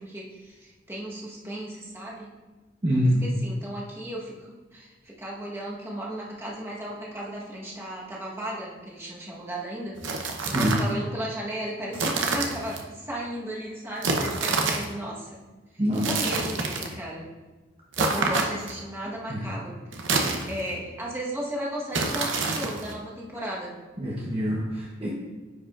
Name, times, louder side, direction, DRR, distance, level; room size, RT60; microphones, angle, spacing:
voice 1, 0.0-2.3 2.9-10.0 10.4-15.4 15.7-17.3 18.0-23.7, right 1 dB, 15° right, -5 dB, 1.2 m, -35 dB
voice 2, 2.8-3.2 10.4-10.7 15.8-16.1 19.3-19.4 24.0-25.1, equal, 30° right, -5 dB, 0.9 m, -25 dB
sound 1, 9.9-10.9 11.9-12.8 14.0-14.9 15.9-17.0 17.9-18.8 19.9-20.8 21.9-22.9, right 3 dB, 80° right, 0.7 m, -27 dB
9.6 x 4.8 x 2.5 m, 1.3 s
head